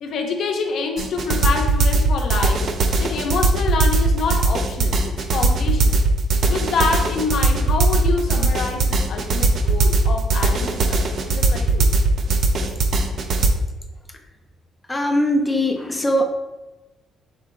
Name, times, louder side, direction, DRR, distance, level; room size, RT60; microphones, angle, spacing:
voice 1, 0.0-2.7 3.0-6.0 6.5-11.9, left 4 dB, 60° left, 3 dB, 0.6 m, -26 dB
sound 1, 1.0-13.5, right 3 dB, 50° right, 0.4 m, -19 dB
voice 2, 14.9-16.2, equal, 10° left, 4 dB, 0.4 m, -20 dB
4.3 x 3.7 x 2.5 m, 1.1 s
cardioid pair, 135°, 0 cm